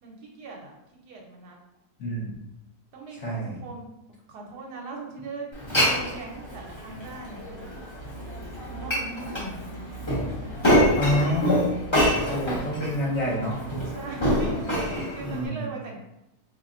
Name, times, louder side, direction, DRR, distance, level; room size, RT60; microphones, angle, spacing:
voice 1, 0.0-0.7 1.0-1.6 2.9-3.9 4.3-5.5 5.8-7.8 8.6-9.6 12.2-12.6 13.9-16.0, right 3 dB, 80° right, 0 dB, 1.3 m, -40 dB
voice 2, 2.0-2.3 3.2-3.6 11.0-11.7 12.3-13.6 15.2-15.7, equal, 50° left, -4 dB, 1.1 m, -27 dB
Glass, 5.5-15.5, equal, 25° left, 0.7 m, -26 dB
4.2 x 2.9 x 2.4 m, 0.88 s
omnidirectional pair, 1.7 m